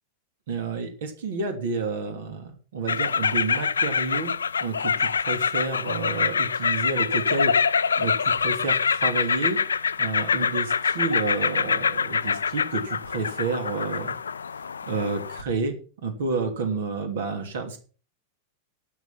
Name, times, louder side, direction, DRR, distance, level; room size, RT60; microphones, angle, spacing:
voice 1, 0.5-4.3 4.6-7.5 8.0-9.6 10.0-14.2 14.9-15.7 16.0-17.8, right 4 dB, 60° right, 6 dB, 2.8 m, -30 dB
sound 1, 2.9-15.4, left 6 dB, 70° left, 0.5 m, -25 dB
12.0 x 7.9 x 5.9 m, 0.39 s
figure-of-eight pair, 90°, 0 cm